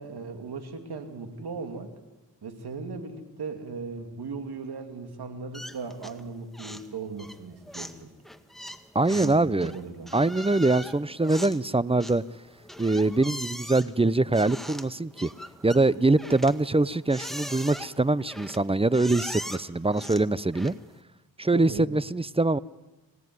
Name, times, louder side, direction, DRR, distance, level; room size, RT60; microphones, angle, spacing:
voice 1, 0.0-1.9 2.4-8.1 9.1-10.1 21.5-21.9, right 4 dB, 80° right, 6 dB, 2.9 m, -37 dB
sound 1, 5.5-6.3 6.5-6.9 7.2-21.0, equal, ahead, 1.8 m, -41 dB
voice 2, 8.9-9.7 10.1-12.2 12.8-15.3 15.6-20.7 21.4-22.6, right 2 dB, 15° right, 19 dB, 0.7 m, -23 dB
25.5 x 17.0 x 9.6 m, 1.1 s
cardioid pair, 50°, 38 cm